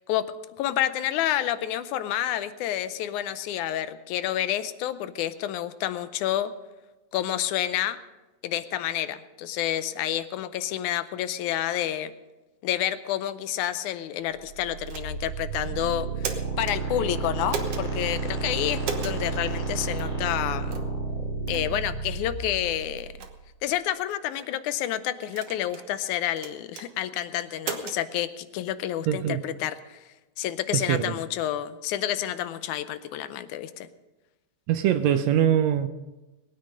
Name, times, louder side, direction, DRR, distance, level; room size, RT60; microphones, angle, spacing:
voice 1, 0.6-6.5 7.1-8.0 8.4-12.1 12.6-20.8 21.5-23.1 23.6-30.0 30.4-33.9, left 12 dB, 85° left, 12 dB, 2.1 m, -29 dB
sound 1, 14.4-23.3, right 4 dB, 15° right, 3.7 m, -31 dB
sound 2, 14.9-15.3 16.0-16.8 17.5-17.8 18.8-19.2 20.0-20.1 20.7-20.9 21.5-21.7 22.3-22.4 23.0-23.3 24.1-24.5 25.3-25.9 26.4-26.9 27.6-28.0, right 6 dB, 60° right, 2.0 m, -35 dB
voice 2, 29.1-29.4 30.9-31.1 34.7-35.9, right 10 dB, 75° right, 10 dB, 1.8 m, -22 dB
20.5 x 9.4 x 5.2 m, 1.1 s
omnidirectional pair, 3.4 m